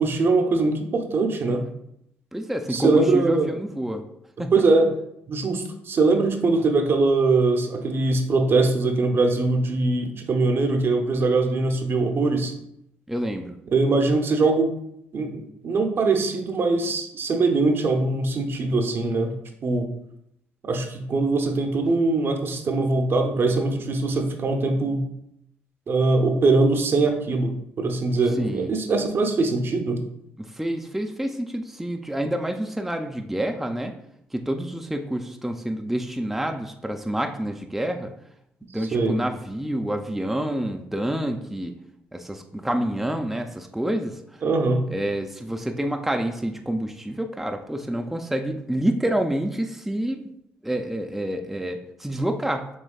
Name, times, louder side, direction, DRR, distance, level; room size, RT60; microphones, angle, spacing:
voice 1, 0.0-1.7 2.7-3.5 4.5-4.9 5.3-12.5 13.7-14.7 15.1-19.4 19.6-19.9 20.6-25.1 25.9-30.0 38.9-39.2 44.4-44.8, right 3 dB, 55° right, 4 dB, 0.7 m, -22 dB
voice 2, 2.3-4.0 4.4-4.5 13.1-13.5 28.4-28.7 30.4-33.9 34.3-38.1 38.7-41.7 42.1-44.4 44.9-50.3 50.6-52.7, right 1 dB, 5° right, 4 dB, 0.4 m, -28 dB
6.2 x 3.1 x 2.3 m, 0.77 s
supercardioid pair, 65°, 5 cm